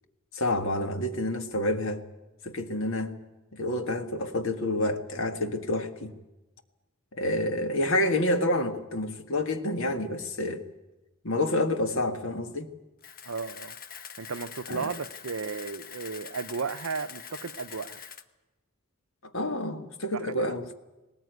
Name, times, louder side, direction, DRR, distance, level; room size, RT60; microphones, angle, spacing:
voice 1, 0.3-2.0 2.4-3.2 3.5-6.1 7.1-10.6 11.2-12.7 14.7-14.9 19.3-20.7, left 1 dB, 65° left, 1.8 m, -28 dB
Camera, 13.0-18.2, left 7 dB, 40° left, 1.0 m, -44 dB
voice 2, 13.2-13.8 14.2-18.0 20.1-20.6, right 4 dB, 70° right, 0.7 m, -34 dB
19.5 x 19.0 x 9.4 m
head